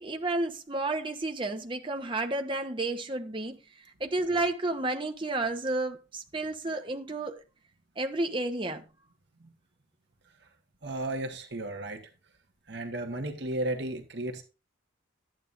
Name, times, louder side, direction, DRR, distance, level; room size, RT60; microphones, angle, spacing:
voice 1, 0.0-3.6 4.0-7.4 8.0-8.8, right 2 dB, 25° right, 0.8 m, -31 dB
voice 2, 10.8-12.0 12.7-14.4, right 1 dB, 60° right, 1.3 m, -34 dB
12.5 x 9.0 x 2.6 m
head